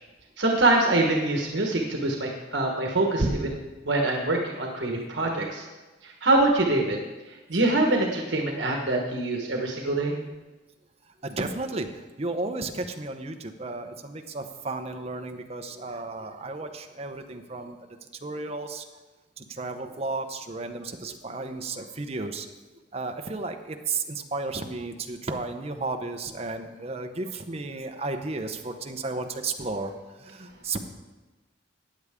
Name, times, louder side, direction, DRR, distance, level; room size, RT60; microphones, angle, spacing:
voice 1, 0.4-3.5 3.8-5.7 6.0-7.0 7.5-10.1, right 2 dB, 80° right, 1 dB, 1.4 m, -24 dB
voice 2, 11.2-18.8 19.4-22.5 22.9-29.9 30.2-30.8, right 3 dB, 35° right, 5 dB, 0.9 m, -33 dB
15.0 x 9.5 x 3.7 m, 1.2 s
head